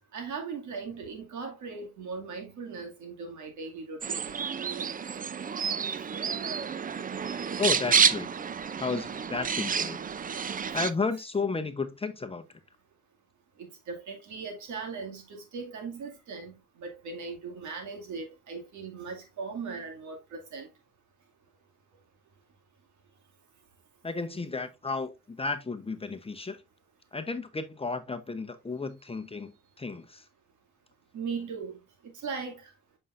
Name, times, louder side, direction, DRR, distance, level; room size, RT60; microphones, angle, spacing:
voice 1, 0.1-4.3 13.6-20.7 31.1-31.8 32.1-32.7, right 5 dB, 75° right, 2.3 m, -39 dB
sound 1, 4.0-10.9, right 6 dB, 30° right, 0.5 m, -29 dB
voice 2, 7.6-8.3 8.8-10.0 10.7-12.6 24.0-26.6 27.1-30.3, left 4 dB, 20° left, 0.8 m, -33 dB
7.4 x 5.4 x 2.5 m
cardioid pair, 90°, 30 cm